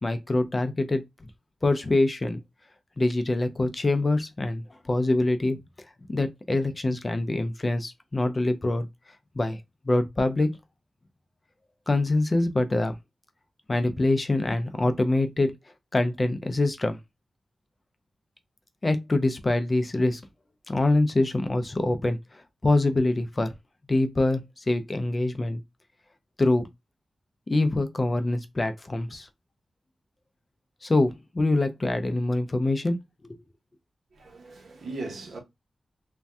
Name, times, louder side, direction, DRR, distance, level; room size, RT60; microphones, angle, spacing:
voice 1, 0.0-1.3 1.6-2.4 3.0-5.6 6.1-8.9 9.4-9.6 9.8-10.6 11.9-13.0 13.7-15.5 15.9-17.0 18.8-20.2 20.7-23.5 23.9-25.6 26.4-26.7 27.5-29.3 30.8-33.0 33.2-33.4, left 2 dB, 30° left, 0.4 m, -25 dB
voice 2, 34.1-35.4, right 3 dB, 75° right, 0.9 m, -38 dB
2.6 x 2.2 x 3.3 m
wide cardioid pair, 120°, 0 cm